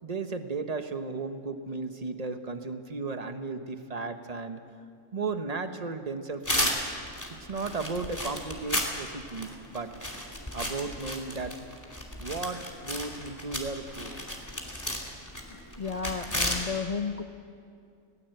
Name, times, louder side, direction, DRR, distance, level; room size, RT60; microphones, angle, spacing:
voice 1, 0.0-4.6 5.1-7.0 7.5-9.9 10.5-11.6 12.2-14.2, right 4 dB, 30° right, 8 dB, 1.1 m, -35 dB
sound 1, 6.4-16.6, left 1 dB, 15° left, 2.6 m, -34 dB
voice 2, 15.5-17.2, left 5 dB, 40° left, 8 dB, 0.6 m, -33 dB
20.0 x 18.0 x 7.9 m, 2.3 s
omnidirectional pair, 1.3 m